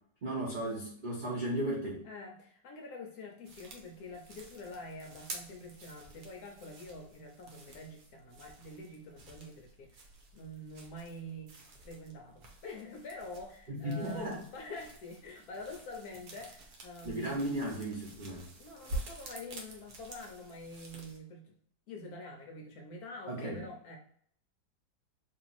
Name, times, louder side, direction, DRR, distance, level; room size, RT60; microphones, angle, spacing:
voice 1, 0.2-2.0 13.7-14.4 17.0-18.5 23.3-23.6, right 1 dB, 80° right, -4 dB, 0.4 m, -35 dB
voice 2, 2.0-10.1 10.3-17.4 18.6-21.6 21.9-24.0, left 1 dB, 70° left, 2 dB, 1.0 m, -46 dB
sound 1, 3.4-21.2, right 2 dB, 60° right, 1.2 m, -49 dB
3.0 x 2.9 x 3.9 m, 0.62 s
omnidirectional pair, 2.0 m